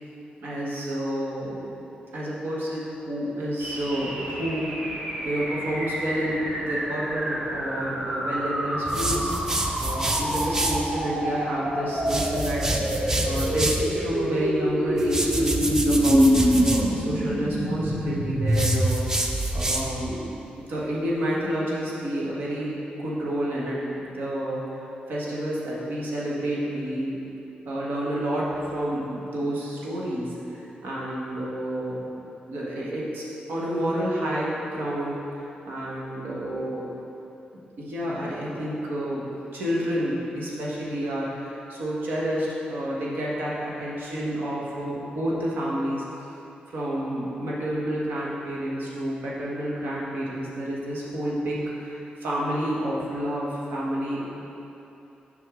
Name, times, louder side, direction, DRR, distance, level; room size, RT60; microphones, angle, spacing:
voice 1, 0.4-1.8 2.1-4.7 5.2-12.7 13.2-20.3 20.6-24.6 25.1-27.2 27.6-32.1 32.5-33.2 33.5-36.9 37.8-39.2 39.5-46.0 46.7-54.2, equal, 90° right, -5 dB, 1.3 m, -29 dB
sound 1, 3.6-19.9, equal, 60° right, 1.1 m, -27 dB
sound 2, 8.9-10.8 12.0-13.9 15.0-16.9 18.5-20.1, right 1 dB, 15° right, 0.4 m, -27 dB
6.2 x 5.5 x 3.7 m, 2.9 s
wide cardioid pair, 145°, 3 cm